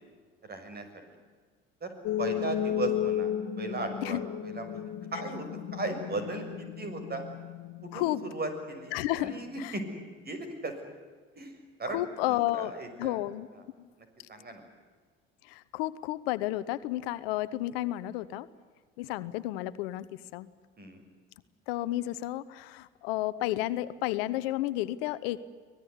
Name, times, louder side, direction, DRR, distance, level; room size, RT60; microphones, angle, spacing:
voice 1, 0.4-1.0 1.8-1.9 2.2-4.7 5.1-7.2 7.8-10.7 11.4-13.2 13.5-13.6 14.0-14.6 20.8-21.0, right 2 dB, 30° right, 8 dB, 6.6 m, -37 dB
sound 1, 2.0-9.0, left 10 dB, 50° left, 2.1 m, -34 dB
voice 2, 8.9-9.7 11.9-12.7 13.0-13.5 13.8-13.9 15.5-18.5 19.0-20.0 20.3-20.5 21.7-25.5, left 16 dB, 70° left, 16 dB, 1.1 m, -32 dB
25.0 x 18.5 x 9.8 m, 1.5 s
hypercardioid pair, 70°, 30 cm